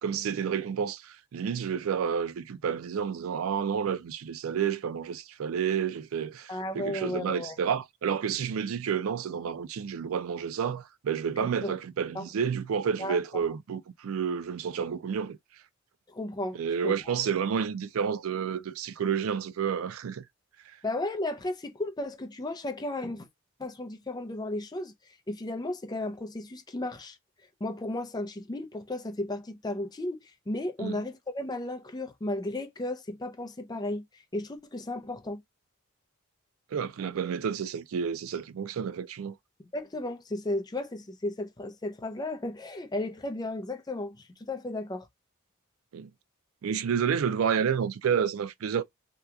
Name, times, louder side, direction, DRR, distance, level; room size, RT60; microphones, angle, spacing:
voice 1, 0.0-15.4 16.5-20.3 30.8-30.9 36.7-39.4 45.9-46.1 46.6-48.8, right 7 dB, 80° right, 0.4 m, -30 dB
voice 2, 6.5-7.6 11.4-11.7 12.1-12.3 13.0-13.2 16.1-16.9 20.8-23.3 23.6-24.9 25.3-27.2 27.6-35.4 39.7-45.1, left 1 dB, 20° left, 0.5 m, -34 dB
2.8 x 2.3 x 3.4 m
head